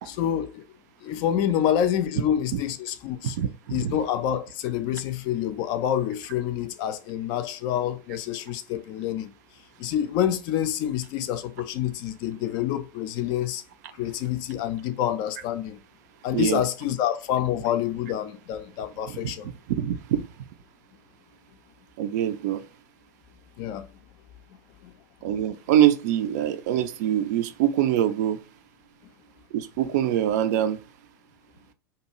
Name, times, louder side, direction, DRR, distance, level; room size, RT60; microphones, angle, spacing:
voice 1, 0.0-0.6 1.0-3.4 3.7-9.3 9.8-13.6 14.0-15.8 16.2-19.5 23.6-23.9 24.8-24.9, left 10 dB, 40° left, 0.4 m, -27 dB
voice 2, 3.2-4.0 16.3-16.6 19.1-20.2 22.0-22.6 25.2-28.4 29.5-30.8, right 11 dB, 55° right, 0.4 m, -24 dB
2.7 x 2.3 x 2.9 m
figure-of-eight pair, 85°, 11 cm